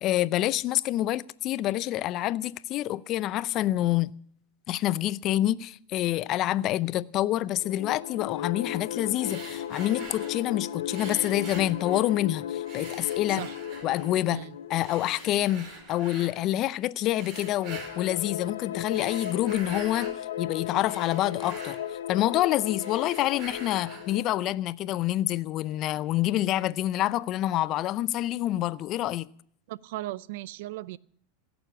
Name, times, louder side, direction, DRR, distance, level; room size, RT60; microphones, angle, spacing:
voice 1, 0.0-4.1 4.7-13.4 13.8-14.4 14.7-20.1 20.4-21.8 22.1-29.3, left 14 dB, 45° left, 0.5 m, -27 dB
sound 1, 7.5-16.1 17.1-24.5, left 10 dB, 90° left, 1.2 m, -36 dB
sound 2, 9.2-10.5 10.9-12.3 12.6-14.2 14.8-16.4 17.1-18.2 18.8-20.2 20.6-22.4 22.7-24.2, right 3 dB, 50° right, 5.2 m, -45 dB
voice 2, 29.7-31.0, right 16 dB, 70° right, 0.5 m, -37 dB
17.0 x 7.0 x 10.0 m
hypercardioid pair, 110°, 0 cm